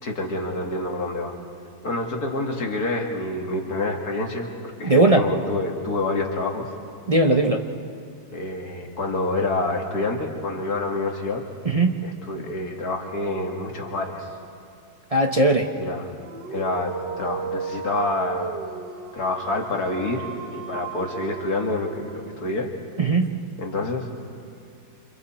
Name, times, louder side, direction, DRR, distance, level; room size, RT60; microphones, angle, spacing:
voice 1, 0.0-1.4 1.8-4.5 4.8-6.7 8.3-11.4 12.0-14.3 15.7-16.1 16.5-18.5 19.1-22.7 23.6-24.1, left 2 dB, 60° left, 1 dB, 2.5 m, -27 dB
voice 2, 4.8-5.2 7.1-7.6 11.6-11.9 15.1-15.7 23.0-23.3, right 2 dB, 35° right, 3 dB, 0.6 m, -18 dB
Dog, 16.2-22.5, right 5 dB, 80° right, 1.9 m, -35 dB
28.5 x 27.0 x 4.4 m, 2.3 s
omnidirectional pair, 1.9 m